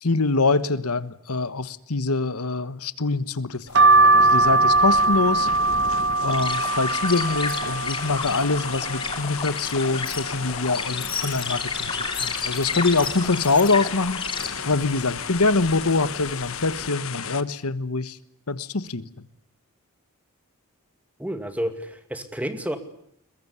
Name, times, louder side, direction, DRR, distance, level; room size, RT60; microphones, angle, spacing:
voice 1, 0.0-5.5 6.2-11.9 12.2-14.3 14.6-18.2 18.5-19.1, left 3 dB, 85° left, 15 dB, 1.4 m, -24 dB
sound 1, 3.5-17.4, left 7 dB, 65° left, 1.5 m, -34 dB
sound 2, 3.8-9.4 9.9-10.7 11.1-11.2 11.3-12.5 12.9-13.3 14.1-14.4 15.2-15.4 15.7-15.9, right 2 dB, 55° right, 1.4 m, -21 dB
sound 3, 6.3-14.5, left 5 dB, 20° left, 3.1 m, -31 dB
voice 2, 21.2-22.8, equal, 5° right, 8 dB, 2.3 m, -30 dB
22.0 x 22.0 x 9.7 m, 0.71 s
head